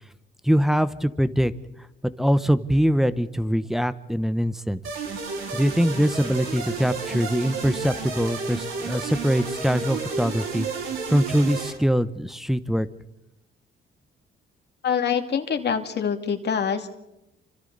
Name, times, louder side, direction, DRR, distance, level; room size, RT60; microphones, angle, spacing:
voice 1, 0.4-1.5 2.2-4.8 5.5-10.7 11.1-12.9, equal, ahead, 13 dB, 1.0 m, -23 dB
sound 1, 4.8-11.7, right 4 dB, 85° right, 4.6 m, -31 dB
voice 2, 14.8-16.9, left 7 dB, 60° left, 6 dB, 2.4 m, -25 dB
28.5 x 26.0 x 4.1 m, 0.89 s
cardioid pair, 90°, 20 cm